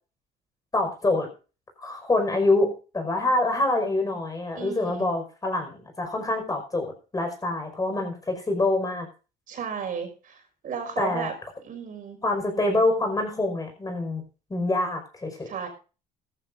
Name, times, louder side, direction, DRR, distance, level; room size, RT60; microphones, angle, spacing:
voice 1, 0.7-1.3 1.8-9.1 11.0-11.3 12.2-14.2 14.5-15.5, left 2 dB, 20° left, 4 dB, 5.3 m, -25 dB
voice 2, 4.6-5.0 9.5-11.3 11.6-12.2 15.5-15.7, right 6 dB, 55° right, 4 dB, 5.6 m, -34 dB
16.5 x 14.5 x 2.6 m, 0.34 s
cardioid pair, 110°, 17 cm